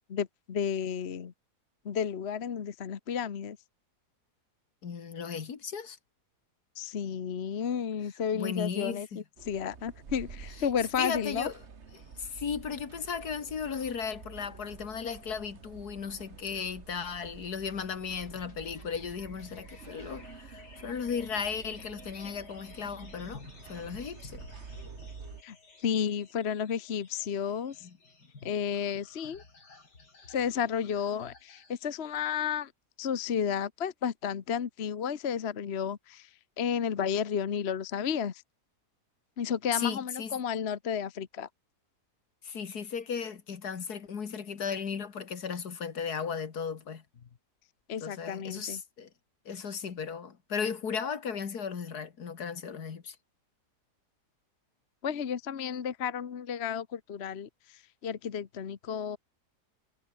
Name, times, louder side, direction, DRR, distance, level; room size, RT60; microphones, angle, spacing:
voice 1, 0.1-1.3 1.8-3.6 6.8-11.5 25.4-27.9 28.4-29.4 30.3-32.7 33.0-36.3 36.6-38.4 39.4-41.5 47.9-48.8 55.0-59.2, left 7 dB, 45° left, 1.2 m, -32 dB
voice 2, 4.8-6.0 8.3-9.2 11.0-11.5 11.9-23.4 23.7-24.5 27.8-27.9 39.7-40.3 42.4-47.0 48.0-49.1 49.5-53.2, left 6 dB, 70° left, 2.3 m, -36 dB
sound 1, 9.4-25.4, right 5 dB, 45° right, 1.8 m, -49 dB
sound 2, 18.2-32.4, left 3 dB, 90° left, 4.6 m, -54 dB
omnidirectional pair, 1.7 m